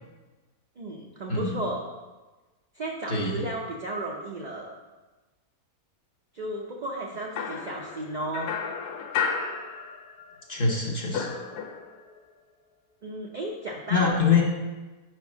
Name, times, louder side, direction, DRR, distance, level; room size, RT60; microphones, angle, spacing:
voice 1, 0.8-1.9 2.7-4.7 6.3-8.5 11.2-11.3 13.0-14.2, right 1 dB, 60° right, -2 dB, 0.4 m, -34 dB
voice 2, 1.3-1.6 3.1-3.5 10.5-11.4 13.9-14.4, left 5 dB, 45° left, -2 dB, 0.9 m, -24 dB
sound 1, 7.4-10.4 10.6-12.1, left 6 dB, 85° left, 1.1 m, -33 dB
5.1 x 4.3 x 6.1 m, 1.2 s
omnidirectional pair, 1.6 m